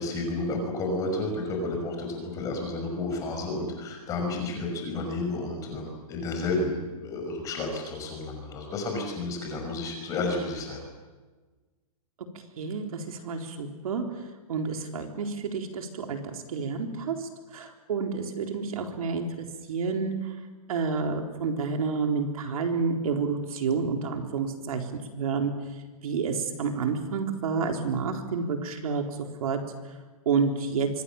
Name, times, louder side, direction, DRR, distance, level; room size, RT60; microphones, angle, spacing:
voice 1, 0.0-10.8, left 2 dB, 15° left, 2 dB, 6.0 m, -31 dB
voice 2, 12.6-14.0 14.5-20.3 20.7-24.9 25.1-25.5 26.0-29.0 29.4-29.6 30.3-30.9, right 5 dB, 70° right, 4 dB, 4.0 m, -29 dB
26.5 x 25.0 x 7.2 m, 1.3 s
hypercardioid pair, 170°, 19 cm